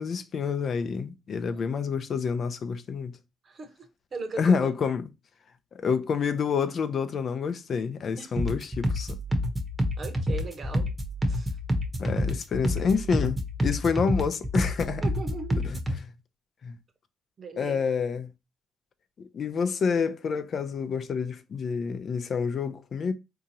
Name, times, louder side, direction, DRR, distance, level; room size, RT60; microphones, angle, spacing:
voice 1, 0.0-3.2 4.4-5.1 5.7-9.2 12.0-15.0 15.6-16.0 16.6-16.8 17.6-18.3 19.2-23.1, left 6 dB, 55° left, 0.5 m, -28 dB
voice 2, 3.4-4.7 8.2-8.3 10.0-11.0 11.3-11.6 15.0-15.7 17.4-17.8, right 4 dB, 45° right, 1.0 m, -38 dB
sound 1, 8.4-16.0, left 1 dB, 15° right, 0.9 m, -28 dB
3.7 x 2.8 x 2.7 m
cardioid pair, 90°, 0 cm